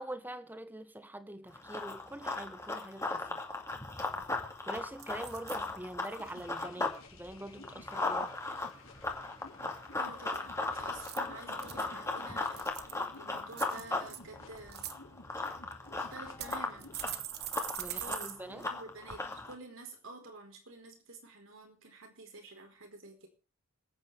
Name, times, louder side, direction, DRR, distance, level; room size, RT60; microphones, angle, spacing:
voice 1, 0.0-3.4 4.7-8.3 17.8-18.7, right 1 dB, 10° right, 1.2 m, -44 dB
Run, 1.5-7.0 7.3-19.5, left 2 dB, 15° left, 2.3 m, -37 dB
sound 1, 4.2-4.6 5.0-5.6 6.0-6.4 10.9-11.9 12.4-13.0 13.5-14.2 14.6-14.9 15.7-15.8 16.4-18.3 18.6-18.7 19.1-19.2, right 12 dB, 50° right, 1.2 m, -42 dB
sound 2, 6.2-17.3, left 2 dB, 70° left, 3.8 m, -54 dB
voice 2, 9.7-14.9 15.9-17.0 17.9-23.3, right 2 dB, 70° right, 4.6 m, -50 dB
27.0 x 9.2 x 3.4 m
head